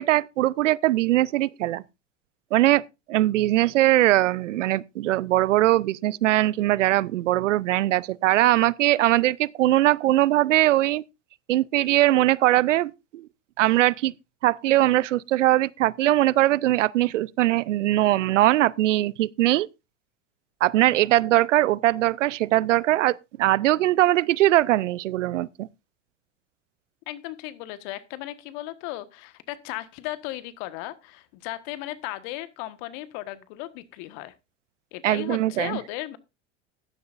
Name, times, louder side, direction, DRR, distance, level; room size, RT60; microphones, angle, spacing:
voice 1, 0.0-1.8 2.5-2.8 3.1-11.0 11.5-13.3 13.6-14.1 14.4-19.7 20.6-25.7 35.0-35.8, right 15 dB, 85° right, 0.6 m, -21 dB
voice 2, 27.1-34.3 34.9-36.2, left 16 dB, 65° left, 1.4 m, -36 dB
15.0 x 11.5 x 2.5 m
hypercardioid pair, 80°, 36 cm